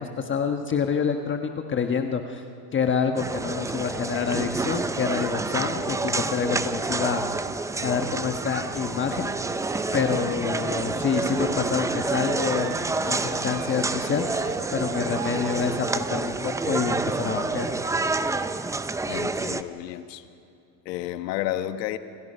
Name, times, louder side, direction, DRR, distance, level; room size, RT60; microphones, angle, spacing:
voice 1, 0.0-2.4 2.7-7.2 7.8-9.3 9.9-12.7 13.0-17.7, left 6 dB, 25° left, 5 dB, 1.3 m, -27 dB
sound 1, 3.2-19.6, right 3 dB, 5° right, 0.5 m, -28 dB
sound 2, 9.4-18.9, right 11 dB, 75° right, 1.5 m, -43 dB
voice 2, 19.0-20.3 20.8-22.0, left 13 dB, 85° left, 10 dB, 1.6 m, -31 dB
29.0 x 25.5 x 5.6 m, 2.6 s
supercardioid pair, 120°, 49 cm